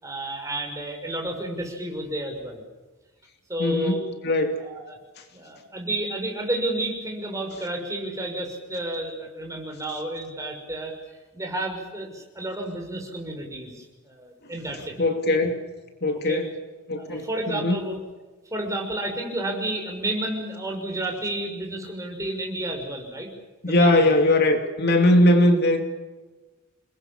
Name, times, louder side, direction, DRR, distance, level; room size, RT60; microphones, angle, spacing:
voice 1, 0.0-2.6 3.5-4.0 4.6-5.0 5.3-10.9 11.3-15.1 16.3-16.4 17.0-18.0 18.5-23.3 23.7-24.1, right 1 dB, 15° right, 2 dB, 6.2 m, -31 dB
voice 2, 3.6-4.6 15.0-15.6 16.0-16.5 16.9-17.8 23.6-25.8, left 1 dB, 50° left, 5 dB, 2.8 m, -20 dB
29.5 x 21.0 x 7.4 m, 1.2 s
head